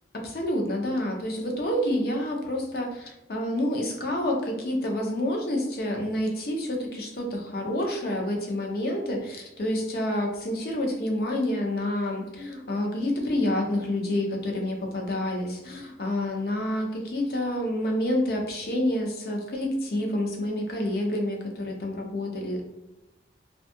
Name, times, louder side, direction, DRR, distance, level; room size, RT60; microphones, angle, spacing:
voice 1, 0.1-22.7, left 1 dB, 55° left, 1 dB, 0.5 m, -28 dB
2.6 x 2.3 x 2.6 m, 0.97 s
head